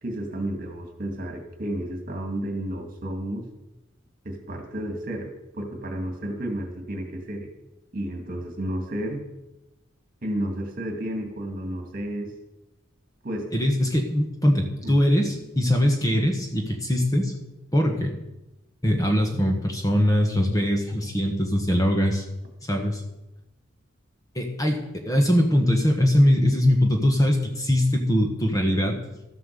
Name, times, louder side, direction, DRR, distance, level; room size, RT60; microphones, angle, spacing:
voice 1, 0.0-3.5 4.2-7.5 7.9-9.2 10.2-12.3 13.2-13.5 14.8-15.0, right 1 dB, 40° right, 4 dB, 2.2 m, -32 dB
voice 2, 13.5-17.3 17.7-18.1 18.8-22.2 22.7-23.0 24.3-29.0, equal, 15° left, 2 dB, 1.4 m, -22 dB
13.0 x 7.7 x 6.7 m, 0.94 s
head